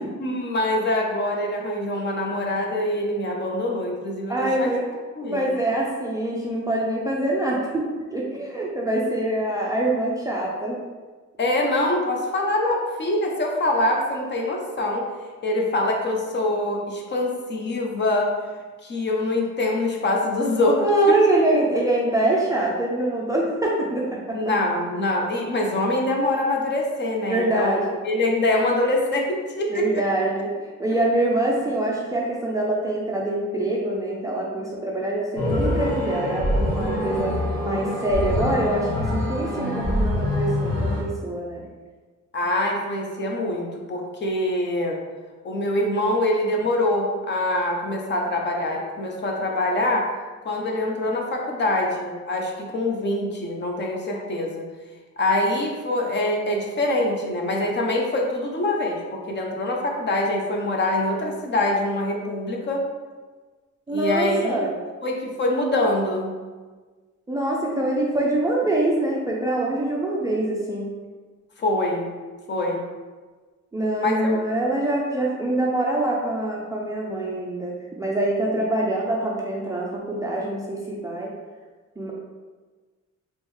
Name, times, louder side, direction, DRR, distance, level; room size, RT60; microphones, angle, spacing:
voice 1, 0.2-4.7 5.2-5.4 11.4-15.1 15.4-18.3 18.8-21.1 24.3-27.8 28.0-30.0 42.3-45.0 45.4-50.1 50.4-54.6 55.2-62.8 63.9-64.6 65.0-66.3 71.6-72.1 72.5-72.8 74.0-74.4, left 1 dB, 35° left, 0 dB, 0.6 m, -24 dB
voice 2, 4.3-4.8 5.2-7.9 8.1-10.8 20.8-24.4 27.3-27.9 29.7-30.5 30.8-41.6 63.9-64.7 67.3-70.9 73.7-81.3 82.0-82.1, right 1 dB, 10° right, -3 dB, 0.3 m, -24 dB
sound 1, 35.4-41.0, left 1 dB, 70° left, 1.2 m, -25 dB
3.6 x 3.0 x 3.1 m, 1.4 s
cardioid pair, 155°, 30 cm